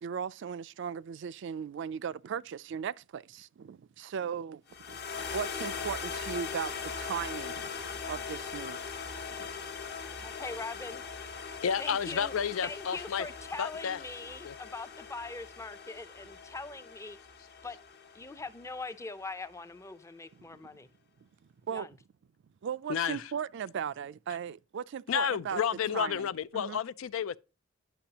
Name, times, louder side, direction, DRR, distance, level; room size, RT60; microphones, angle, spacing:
voice 1, 0.0-4.6 4.9-7.7 8.1-8.8 9.3-9.5 20.4-20.7 21.6-21.9 22.6-25.6 25.9-26.3 26.5-26.8, right 7 dB, 65° right, 0.4 m, -37 dB
sound 1, 4.7-19.1, left 5 dB, 55° left, 1.1 m, -41 dB
voice 2, 10.2-11.0 11.8-12.3 12.6-17.2 17.6-17.8 18.1-20.9 21.7-21.9, left 3 dB, 15° left, 0.5 m, -41 dB
voice 3, 11.6-13.3 13.6-14.0 14.4-14.5 22.9-23.2 25.1-27.4, left 7 dB, 85° left, 0.4 m, -31 dB
10.0 x 6.0 x 2.9 m
head